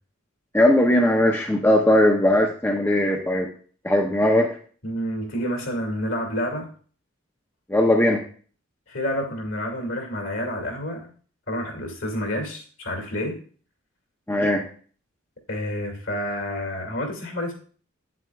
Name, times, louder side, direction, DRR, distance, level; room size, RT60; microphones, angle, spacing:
voice 1, 0.5-3.5 3.8-4.6 7.7-8.2 14.3-14.6, left 1 dB, 10° left, 1 dB, 0.6 m, -19 dB
voice 2, 4.8-6.7 8.9-11.1 11.5-13.4 15.5-17.5, equal, 65° left, 3 dB, 2.2 m, -29 dB
9.4 x 7.6 x 2.3 m, 0.42 s
head